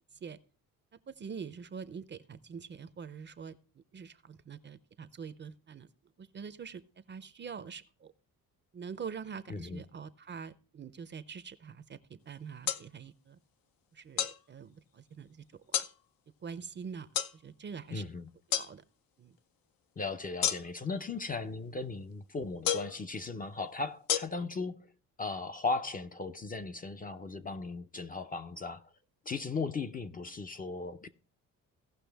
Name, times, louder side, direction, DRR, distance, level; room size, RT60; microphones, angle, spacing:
voice 1, 1.1-3.6 3.9-5.9 6.2-6.8 7.1-8.1 8.7-13.4 13.9-15.8 16.4-17.1 17.3-18.1 18.5-18.8 19.2-19.3, right 6 dB, 30° right, 0.5 m, -44 dB
voice 2, 9.5-9.8 17.9-18.3 20.0-24.9 25.2-28.9 29.3-31.1, left 3 dB, 25° left, 0.5 m, -37 dB
sound 1, 12.7-12.8 14.2-14.4 15.7-15.9 17.1-17.3 18.5-18.7 20.4-20.9 22.6-23.0 24.1-24.2, left 10 dB, 75° left, 0.8 m, -30 dB
17.0 x 5.8 x 3.4 m
cardioid pair, 135°, 35 cm